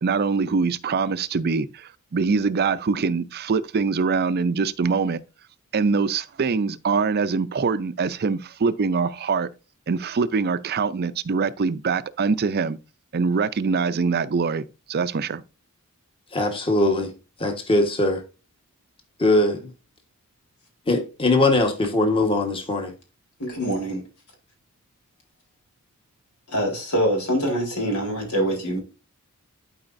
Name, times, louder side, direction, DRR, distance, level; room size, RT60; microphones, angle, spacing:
voice 1, 0.0-5.2 5.7-9.5 9.9-12.8 13.1-15.4, right 4 dB, 45° right, 0.5 m, -23 dB
voice 2, 16.3-17.1 17.4-18.2 19.2-19.7 20.9-22.9, left 2 dB, 25° left, 1.3 m, -21 dB
voice 3, 23.4-24.0 26.5-28.8, equal, 85° left, 3.8 m, -24 dB
12.0 x 4.8 x 2.6 m
head